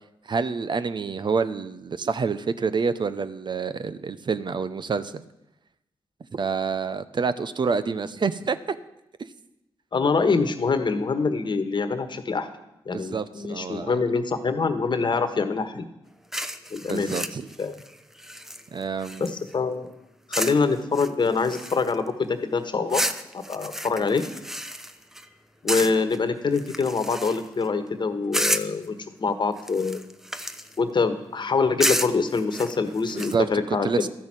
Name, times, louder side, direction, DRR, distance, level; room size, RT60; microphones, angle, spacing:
voice 1, 0.3-5.2 6.3-8.8 12.9-14.0 16.8-17.4 18.7-19.3 33.1-34.1, right 5 dB, 50° right, 13 dB, 0.7 m, -27 dB
voice 2, 9.9-12.5 12.9-15.8 16.7-17.3 17.6-17.7 19.2-19.9 20.4-23.1 23.5-24.3 25.6-30.0 30.8-34.1, left 4 dB, 50° left, 10 dB, 1.4 m, -25 dB
sound 1, 16.3-19.5 20.3-20.6 20.9-22.1 22.9-25.2 25.7-26.2 26.5-27.6 28.3-28.8 29.6-30.8 31.8-33.3, equal, 5° right, 0.8 m, -30 dB
12.5 x 6.2 x 8.9 m, 0.88 s
supercardioid pair, 50°, 10 cm